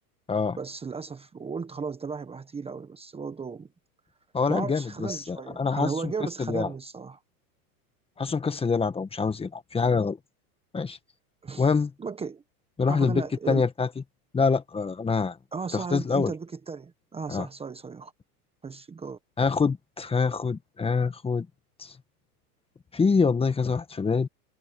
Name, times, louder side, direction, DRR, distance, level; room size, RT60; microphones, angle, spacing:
voice 1, 0.6-3.7 4.5-7.2 11.4-11.7 12.0-12.4 12.9-13.6 15.5-18.1 18.6-19.2, right 5 dB, 10° right, 1.4 m, -35 dB
voice 2, 4.3-6.1 6.4-6.7 8.2-10.2 10.7-11.0 11.6-11.9 12.8-13.9 14.3-15.4 15.7-16.3 17.3-17.5 19.4-21.5 21.8-21.9 22.9-24.3, left 5 dB, 10° left, 1.7 m, -25 dB
hypercardioid pair, 130°, 46 cm